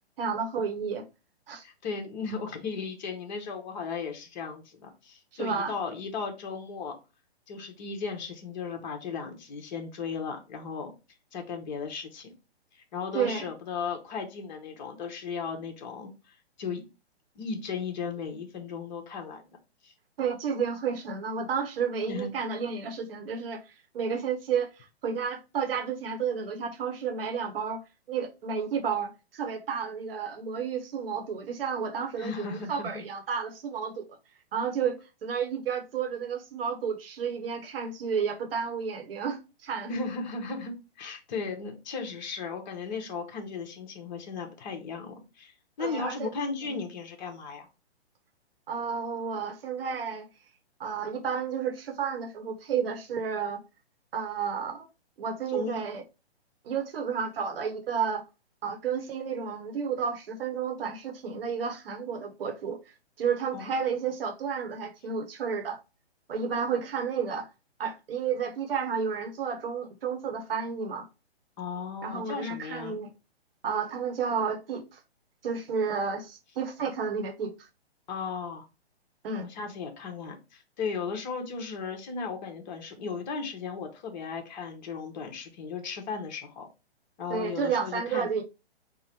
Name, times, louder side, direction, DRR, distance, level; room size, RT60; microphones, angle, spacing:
voice 1, 0.2-1.0 1.5-1.6 5.3-5.7 13.1-13.5 20.2-24.7 25.0-27.8 28.1-34.0 34.5-39.9 45.8-46.3 46.6-46.7 48.7-50.3 50.8-53.6 54.1-54.8 55.2-56.0 56.6-58.2 58.6-62.8 63.2-65.8 66.3-67.5 67.8-71.1 72.0-73.1 73.6-75.0 75.4-77.7 79.2-79.5 87.3-88.4, right 6 dB, 60° right, 0.9 m, -31 dB
voice 2, 1.6-7.0 7.5-10.9 11.3-12.3 12.7-16.8 17.3-19.6 19.8-19.9 22.1-22.3 32.2-33.0 39.9-47.7 55.5-55.8 63.5-63.7 71.6-73.0 78.1-78.6 79.5-86.7 87.2-88.3, left 5 dB, 45° left, 1.0 m, -36 dB
3.7 x 2.1 x 4.3 m
hypercardioid pair, 135°, 33 cm